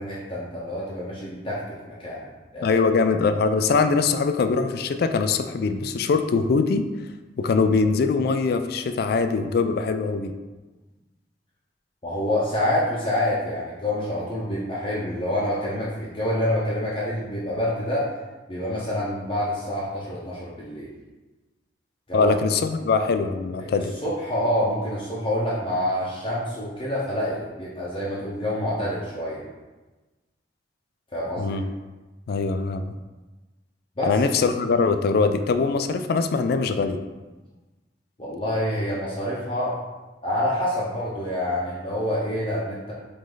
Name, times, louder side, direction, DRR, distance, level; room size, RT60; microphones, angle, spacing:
voice 1, 0.0-2.7 12.0-18.1 18.5-20.9 22.1-22.3 22.7-22.8 23.6-29.4 31.1-31.6 34.0-34.2 38.2-39.7 40.2-42.9, left 1 dB, 30° left, -8 dB, 0.7 m, -27 dB
voice 2, 2.6-6.8 7.4-10.3 22.1-23.9 31.4-31.6 32.3-32.9 34.1-37.0, left 4 dB, 60° left, 9 dB, 0.3 m, -22 dB
5.0 x 2.6 x 3.8 m, 1.2 s
head